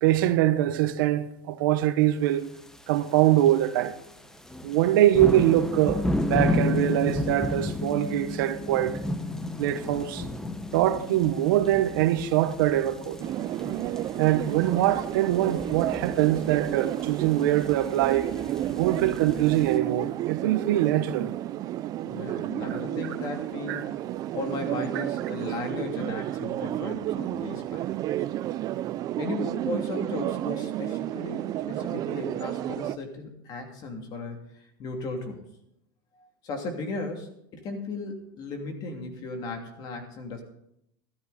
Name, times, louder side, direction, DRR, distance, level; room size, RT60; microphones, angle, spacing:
voice 1, 0.0-2.5 2.9-4.0 4.6-9.0 9.6-10.3 10.7-13.2 14.2-18.3 18.7-21.3 23.7-23.8, right 13 dB, 70° right, 1.1 m, -23 dB
sound 1, 2.7-3.0 3.4-3.7 4.0-19.8, left 2 dB, 5° left, 0.8 m, -33 dB
sound 2, 13.2-33.0, right 13 dB, 35° right, 0.5 m, -31 dB
voice 2, 22.0-23.9 24.3-27.9 29.2-35.4 36.1-40.4, left 3 dB, 35° left, 2.8 m, -36 dB
14.0 x 13.0 x 4.2 m
supercardioid pair, 145°, 12 cm